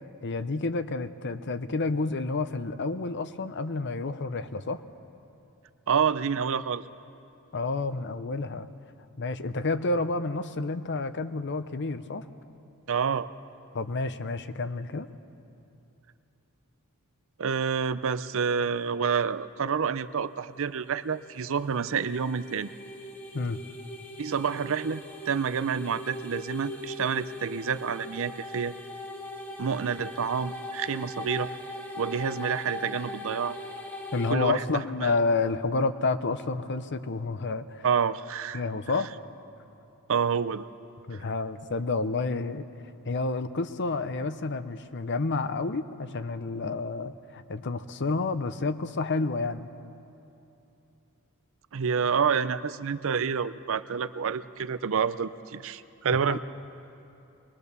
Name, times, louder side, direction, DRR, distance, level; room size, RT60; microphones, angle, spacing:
voice 1, 0.2-4.8 7.5-8.7 9.2-12.2 13.7-15.1 23.3-23.6 34.1-37.9 38.5-39.1 41.1-42.7 43.0-49.7 56.3-56.4, left 3 dB, 55° left, 12 dB, 0.8 m, -29 dB
voice 2, 5.9-6.8 12.9-13.3 17.4-22.7 24.2-28.7 29.6-31.5 32.0-33.6 34.3-34.6 35.0-35.1 37.8-38.6 40.1-40.6 41.1-41.2 51.7-56.4, right 6 dB, 65° right, 14 dB, 0.6 m, -28 dB
sound 1, 20.8-34.3, left 1 dB, 10° left, 1.2 m, -40 dB
23.0 x 21.0 x 6.8 m, 2.8 s
head